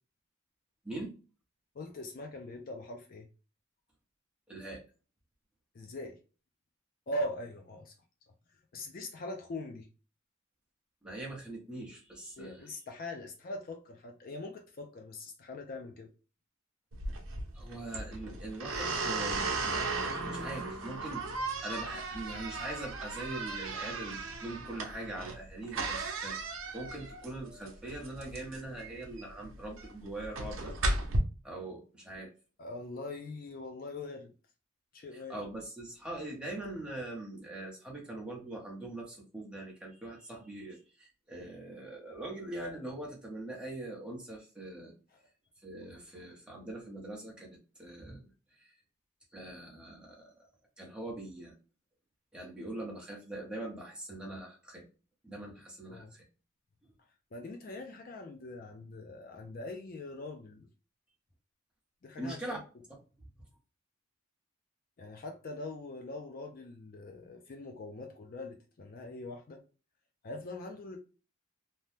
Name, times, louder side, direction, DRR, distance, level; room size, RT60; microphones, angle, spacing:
voice 1, 1.7-3.3 5.7-6.2 7.1-7.9 8.7-9.9 12.4-16.1 32.6-34.3 34.9-35.4 45.1-45.2 55.9-56.1 57.3-60.7 62.0-62.6 65.0-69.6 70.2-71.0, left 2 dB, 45° left, 0.4 m, -42 dB
voice 2, 4.5-4.8 11.0-12.7 17.5-30.7 31.4-32.3 35.3-44.9 45.6-48.3 48.6-48.7 49.3-50.3 50.8-51.5 52.3-54.9 55.2-56.2 62.2-62.6, right 2 dB, 5° right, 0.8 m, -42 dB
sound 1, 16.9-31.2, right 3 dB, 65° right, 0.7 m, -36 dB
2.7 x 2.2 x 3.3 m
head